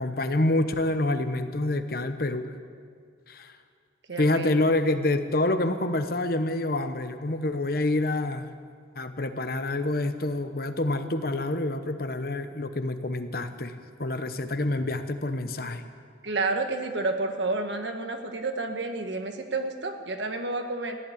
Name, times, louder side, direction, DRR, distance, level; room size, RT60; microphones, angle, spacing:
voice 1, 0.0-2.5 3.3-3.5 4.2-8.5 9.0-13.7 14.0-15.8, left 2 dB, 55° left, 9 dB, 0.9 m, -27 dB
voice 2, 4.1-4.5 16.2-21.0, right 3 dB, 85° right, 5 dB, 1.5 m, -30 dB
15.5 x 11.0 x 8.5 m, 2.2 s
head